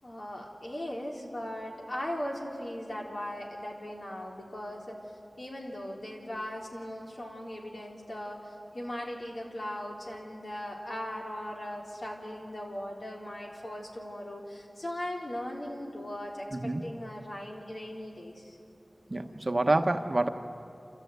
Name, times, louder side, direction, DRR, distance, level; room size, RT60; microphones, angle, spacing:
voice 1, 0.0-5.0 5.4-18.6, left 1 dB, 60° left, -2 dB, 3.9 m, -38 dB
voice 2, 16.5-16.8 19.1-20.3, right 2 dB, 45° right, 6 dB, 1.1 m, -27 dB
29.0 x 14.0 x 9.3 m, 2.6 s
wide cardioid pair, 55°, 0 cm